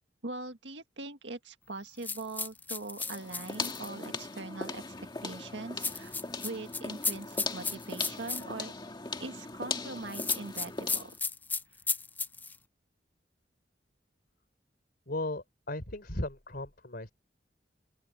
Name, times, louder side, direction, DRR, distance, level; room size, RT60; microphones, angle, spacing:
voice 1, 0.2-4.9 5.2-6.2 6.4-8.7 9.2-11.1, right 2 dB, 85° right, 1.8 m, -41 dB
sound 1, 2.0-3.9 5.8-8.4 10.1-12.6, left 4 dB, 10° left, 0.4 m, -34 dB
sound 2, 3.0-11.2, left 3 dB, 25° left, 2.1 m, -39 dB
voice 2, 15.1-17.1, left 1 dB, 60° left, 4.0 m, -36 dB
open air
head